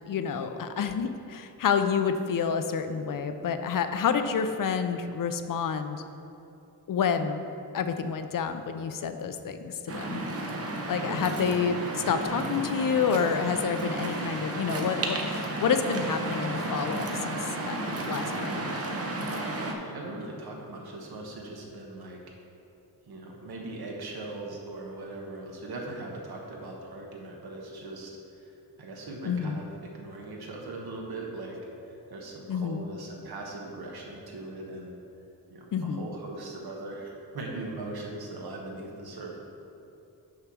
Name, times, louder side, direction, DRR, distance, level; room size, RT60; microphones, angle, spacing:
voice 1, 0.1-6.0 6.9-7.4 7.7-10.2 10.9-11.8 12.1-18.8 29.3-29.6 32.5-32.8 35.7-36.0, left 6 dB, 60° left, 9 dB, 0.5 m, -29 dB
Waves surf, 9.9-19.7, right 2 dB, 40° right, 0.8 m, -32 dB
voice 2, 11.1-11.6 19.8-22.2 23.1-28.5 28.8-31.6 31.8-34.9 35.5-39.4, right 2 dB, 75° right, -1 dB, 1.3 m, -40 dB
6.5 x 4.8 x 6.1 m, 2.8 s
wide cardioid pair, 140°, 38 cm